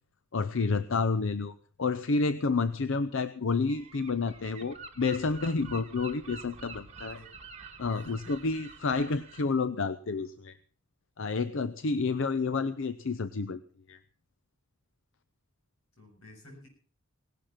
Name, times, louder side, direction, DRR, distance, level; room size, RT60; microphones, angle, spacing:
voice 1, 0.3-1.5 1.8-7.2 7.8-10.6 11.2-13.6 13.9-14.0, left 4 dB, 65° left, 14 dB, 0.7 m, -29 dB
Gull seagull, 3.7-9.4, right 4 dB, 35° right, 1.8 m, -47 dB
voice 2, 7.0-7.3 7.9-8.5 12.4-12.7 16.0-16.7, left 1 dB, 90° left, 2 dB, 7.2 m, -52 dB
18.0 x 11.5 x 5.8 m, 0.42 s
head